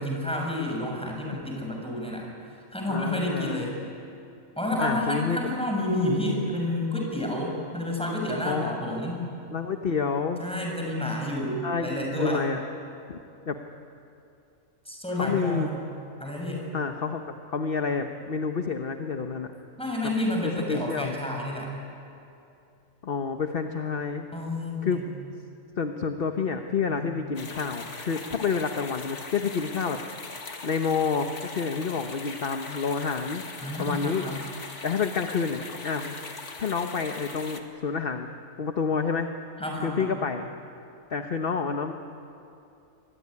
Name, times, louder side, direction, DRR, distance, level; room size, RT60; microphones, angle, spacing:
voice 1, 0.0-2.3 2.7-3.7 4.6-9.2 10.4-12.5 14.8-15.8 16.2-16.6 19.8-21.7 24.3-25.1 26.9-27.1 33.6-34.4 39.6-40.1, left 1 dB, 5° left, 0 dB, 6.3 m, -30 dB
voice 2, 2.9-3.7 4.8-5.6 8.5-8.8 9.5-10.4 11.6-12.6 13.1-13.6 15.2-15.7 16.7-19.5 20.4-21.1 23.0-24.3 24.8-25.0 25.8-30.0 30.6-33.4 33.8-34.2 34.8-36.1 36.6-38.3 38.6-39.3 39.8-40.5 41.1-41.9, left 5 dB, 45° left, 6 dB, 1.2 m, -29 dB
sound 1, 27.3-37.6, left 3 dB, 60° left, 2.1 m, -40 dB
26.5 x 22.0 x 9.9 m, 2.7 s
omnidirectional pair, 1.4 m